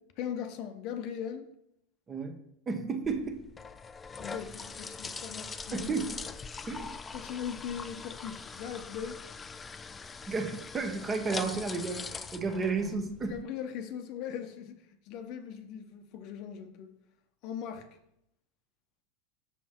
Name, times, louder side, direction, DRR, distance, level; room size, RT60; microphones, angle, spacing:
voice 1, 0.2-1.5 4.2-5.9 7.1-9.2 13.2-14.7 15.1-16.9 17.4-17.8, left 8 dB, 50° left, 7 dB, 0.8 m, -39 dB
voice 2, 2.7-3.4 5.7-6.1 6.7-6.9 10.3-13.4, right 4 dB, 20° right, 6 dB, 0.9 m, -32 dB
sound 1, 3.0-13.4, left 5 dB, 15° left, 0.3 m, -42 dB
6.2 x 5.7 x 4.4 m, 0.76 s
supercardioid pair, 135°, 0 cm